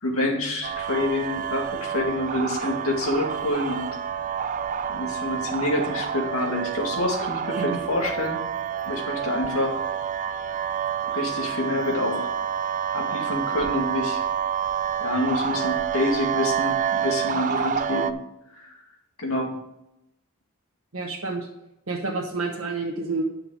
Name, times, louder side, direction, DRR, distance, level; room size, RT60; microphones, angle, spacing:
voice 1, 0.0-4.2 4.9-8.4 8.8-9.8 11.0-12.3 12.9-14.2 15.0-18.1 18.6-18.7 19.2-19.5, left 1 dB, 85° left, 1 dB, 2.1 m, -27 dB
sound 1, 0.6-18.1, right 8 dB, 35° right, 0.4 m, -28 dB
voice 2, 20.9-21.5 21.9-23.2, right 3 dB, 75° right, -2 dB, 1.2 m, -29 dB
10.5 x 5.9 x 5.0 m, 0.86 s
head